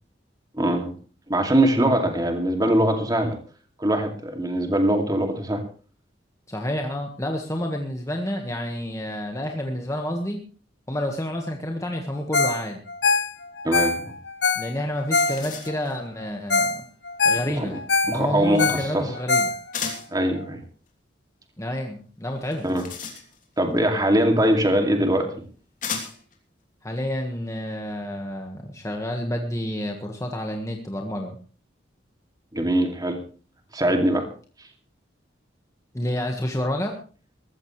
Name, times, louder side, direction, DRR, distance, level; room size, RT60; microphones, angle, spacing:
voice 1, 0.5-0.9 1.3-3.4 3.8-5.6 13.6-14.0 17.6-17.7 18.1-19.1 20.1-20.6 22.6-22.8 23.6-25.3 32.5-33.2 33.7-34.3, right 1 dB, 20° right, 4 dB, 2.5 m, -22 dB
voice 2, 6.5-10.4 10.9-12.8 14.5-16.8 17.2-19.5 21.6-22.7 26.8-31.4 35.9-37.0, left 1 dB, 15° left, 2 dB, 1.6 m, -29 dB
Ringtone, 12.3-12.6 12.9-15.8 16.2-16.3 16.5-16.8 17.1-19.9 20.4-20.5, left 4 dB, 65° left, 1.4 m, -23 dB
sound 1, 14.6-14.7 15.0-16.0 19.7-20.2 22.4-23.6 24.7-24.8 25.8-26.4, left 6 dB, 45° left, 3.1 m, -34 dB
21.0 x 15.0 x 3.3 m, 0.38 s
head